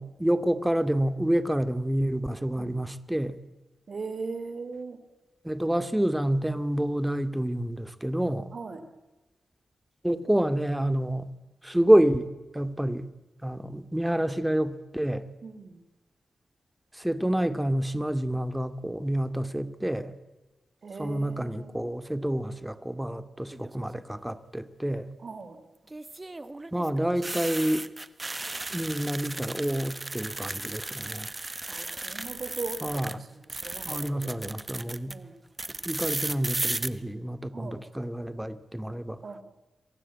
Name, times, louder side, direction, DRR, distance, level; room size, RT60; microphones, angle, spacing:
voice 1, 0.0-3.4 5.4-8.5 10.0-11.3 11.6-12.3 12.5-13.1 13.4-15.2 17.0-20.1 21.0-25.1 26.7-27.8 28.7-31.3 32.8-33.2 33.9-35.1 35.8-39.2, right 1 dB, 10° right, 11 dB, 2.4 m, -28 dB
voice 2, 3.9-5.0 8.5-8.8 15.4-15.8 20.8-21.7 25.2-25.6 31.7-34.4 35.1-35.4 37.5-37.8 39.2-39.4, right 4 dB, 60° right, 10 dB, 3.4 m, -39 dB
sound 1, 23.5-24.0 25.9-33.1 33.4-35.1 35.6-36.9, right 2 dB, 30° right, 1.5 m, -35 dB
27.5 x 23.0 x 8.8 m, 1.1 s
supercardioid pair, 40°, 0 cm